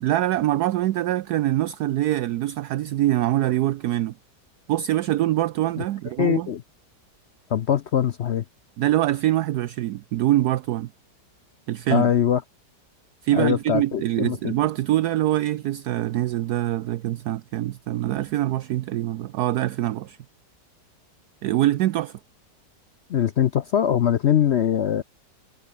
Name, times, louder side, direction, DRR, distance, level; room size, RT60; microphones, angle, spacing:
voice 1, 0.0-4.2 4.7-6.5 8.8-10.9 11.7-12.1 13.2-20.2 21.4-22.2, right 14 dB, 70° right, 1.1 m, -24 dB
voice 2, 6.2-6.6 7.5-8.4 11.9-12.4 13.3-14.5 23.1-25.0, left 9 dB, 65° left, 0.6 m, -22 dB
omnidirectional pair, 1.8 m